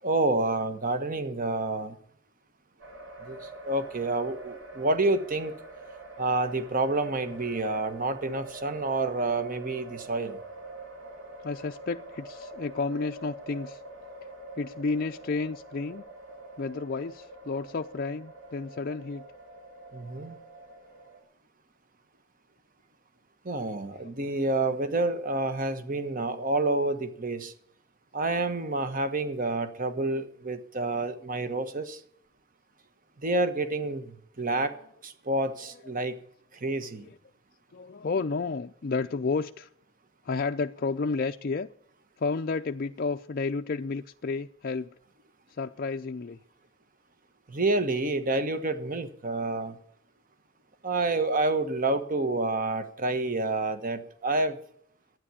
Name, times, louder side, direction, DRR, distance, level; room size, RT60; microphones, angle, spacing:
voice 1, 0.0-2.0 3.2-5.5 6.2-10.4 19.9-20.3 23.4-27.5 28.1-32.0 33.2-34.8 35.0-36.2 36.5-37.1 47.5-49.8 50.8-54.6, right 2 dB, 40° right, 10 dB, 1.3 m, -28 dB
sound 1, 2.8-21.2, right 2 dB, 65° right, 4.3 m, -45 dB
voice 2, 11.4-13.8 14.6-16.0 16.6-19.2 23.9-24.1 34.5-34.9 35.6-35.9 36.8-37.2 37.7-39.7 40.2-41.7 42.2-44.9 45.6-46.4, left 4 dB, 45° left, 5 dB, 0.5 m, -32 dB
12.5 x 9.5 x 8.4 m, 0.64 s
head